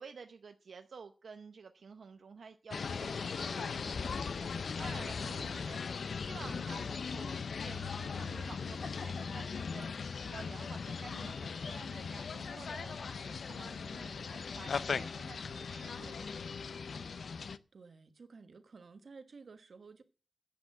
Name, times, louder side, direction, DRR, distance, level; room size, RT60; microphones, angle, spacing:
voice 1, 0.0-4.5 4.8-5.8 6.1-9.9 10.2-16.5 16.8-17.0, right 5 dB, 75° right, 0.8 m, -51 dB
sound 1, 2.7-17.6, left 5 dB, 70° left, 0.6 m, -39 dB
voice 2, 17.7-20.0, right 4 dB, 60° right, 1.4 m, -53 dB
10.5 x 8.6 x 7.8 m
wide cardioid pair, 155°, 0 cm